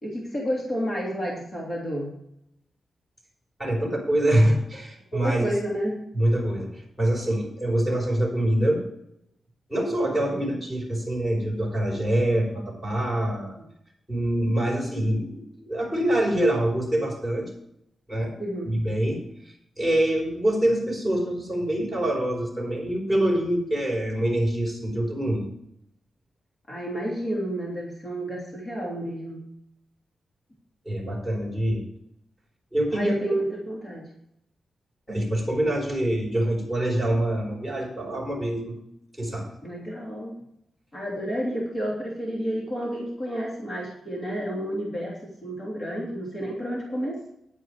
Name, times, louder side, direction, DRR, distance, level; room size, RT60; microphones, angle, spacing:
voice 1, 0.0-2.1 5.1-6.0 10.3-10.5 18.4-18.8 26.7-29.4 32.9-34.0 39.6-40.4 40.9-47.3, equal, 30° left, -3 dB, 3.0 m, -30 dB
voice 2, 3.6-5.4 6.1-8.8 9.7-13.6 14.1-17.5 18.1-18.4 18.6-19.2 19.8-25.5 30.8-31.8 32.7-33.2 35.1-38.7 39.2-39.5, right 1 dB, 5° left, 0 dB, 4.4 m, -25 dB
10.5 x 9.2 x 4.9 m, 0.76 s
wide cardioid pair, 170°, 0 cm